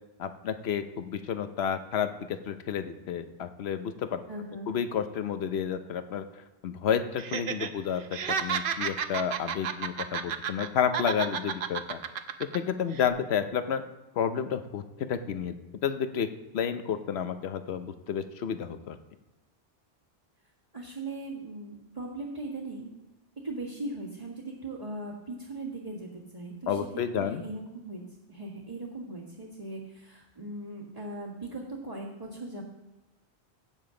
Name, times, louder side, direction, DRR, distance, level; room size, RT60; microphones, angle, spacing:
voice 1, 0.2-4.2 4.7-6.2 6.6-12.0 12.4-13.8 14.2-15.6 15.8-16.3 16.5-19.0 26.7-27.4, left 8 dB, 70° left, 10 dB, 1.0 m, -30 dB
voice 2, 4.3-4.7 20.7-22.9 23.4-26.8 27.2-28.0 28.3-32.6, right 2 dB, 35° right, -9 dB, 1.9 m, -39 dB
Laughter, 7.2-7.7 8.0-10.7 10.9-12.6 12.9-13.1, right 7 dB, 60° right, 0.8 m, -32 dB
16.0 x 7.0 x 3.8 m, 1.0 s
omnidirectional pair, 1.1 m